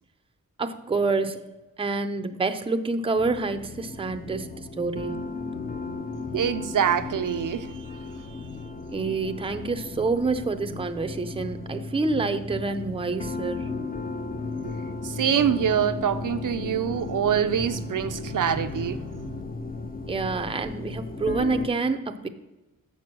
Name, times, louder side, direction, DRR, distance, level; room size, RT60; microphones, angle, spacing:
voice 1, 0.6-1.4 1.8-5.3 8.9-13.7 20.1-22.3, right 3 dB, 15° right, 7 dB, 0.5 m, -27 dB
sound 1, 3.2-21.7, left 3 dB, 25° left, 0.6 m, -35 dB
voice 2, 6.3-7.8 14.6-14.7 15.0-19.0 19.3-19.4, right 8 dB, 65° right, 10 dB, 0.5 m, -25 dB
7.0 x 6.1 x 5.9 m, 1.1 s
wide cardioid pair, 115°, 33 cm